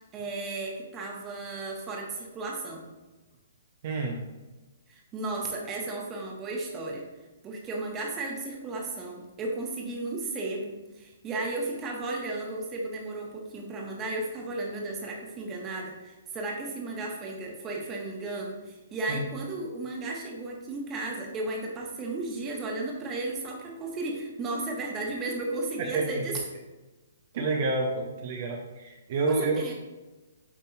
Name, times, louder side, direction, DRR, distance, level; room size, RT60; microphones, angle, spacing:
voice 1, 0.1-2.8 4.9-7.0 7.4-26.4 29.4-29.7, right 2 dB, 20° right, -1 dB, 1.5 m, -34 dB
voice 2, 3.8-4.2 19.1-19.2 25.8-26.2 27.3-29.7, right 3 dB, 45° right, 0 dB, 1.0 m, -29 dB
8.5 x 5.3 x 2.7 m, 1.1 s
figure-of-eight pair, 125°, 0 cm